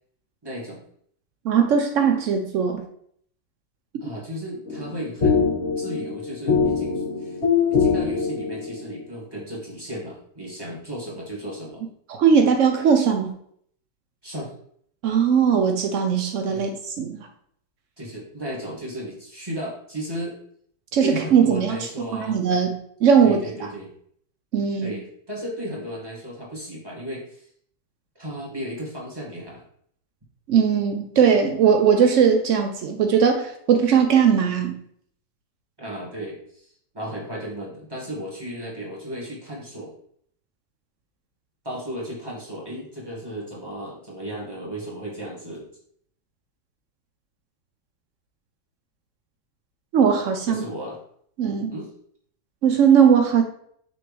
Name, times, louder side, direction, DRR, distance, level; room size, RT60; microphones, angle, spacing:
voice 1, 0.4-0.8 4.0-7.4 7.7-11.8 14.2-14.5 16.5-16.7 18.0-20.4 21.0-22.4 23.2-23.9 24.8-27.4 28.2-29.6 35.8-39.9 41.6-45.7 50.5-51.0 51.7-51.9, equal, 15° right, -4 dB, 1.8 m, -35 dB
voice 2, 1.4-2.8 12.1-13.3 15.0-16.7 17.0-17.2 20.9-21.8 22.1-23.4 24.5-24.9 30.5-34.8 49.9-50.6 51.4-51.7 52.6-53.4, right 7 dB, 85° right, 5 dB, 0.6 m, -19 dB
sound 1, 4.7-9.0, left 5 dB, 40° left, 1.3 m, -23 dB
6.3 x 4.6 x 3.3 m, 0.65 s
omnidirectional pair, 2.1 m